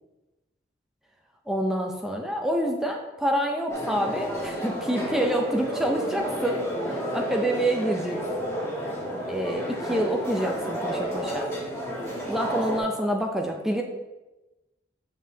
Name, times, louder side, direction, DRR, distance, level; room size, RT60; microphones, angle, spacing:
voice 1, 1.5-6.6 6.9-8.5 9.3-11.5 12.3-13.8, right 1 dB, ahead, 1 dB, 0.5 m, -27 dB
sound 1, 3.7-12.8, equal, 15° left, 1.3 m, -31 dB
7.1 x 5.6 x 2.7 m, 1.1 s
head